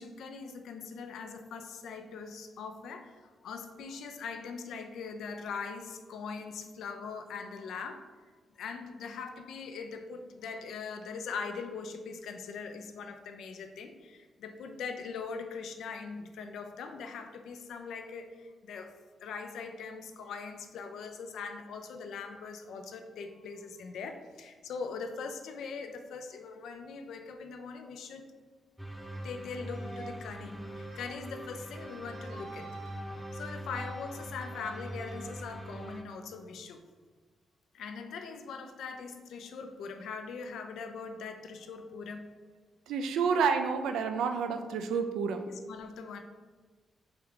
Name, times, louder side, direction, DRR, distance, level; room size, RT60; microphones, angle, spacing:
voice 1, 0.0-8.1 8.6-18.9 19.2-28.3 29.2-32.9 33.3-36.8 37.7-42.3 45.5-46.2, left 5 dB, 80° left, 6 dB, 0.4 m, -41 dB
sound 1, 28.8-36.0, equal, ahead, 0.6 m, -43 dB
sound 2, 28.8-29.2 29.7-30.2 30.6-31.1 31.6-35.2, right 1 dB, 60° right, 0.8 m, -48 dB
voice 2, 42.9-45.5, right 6 dB, 85° right, 7 dB, 0.3 m, -29 dB
3.4 x 3.3 x 3.6 m, 1.4 s
supercardioid pair, 50°, 0 cm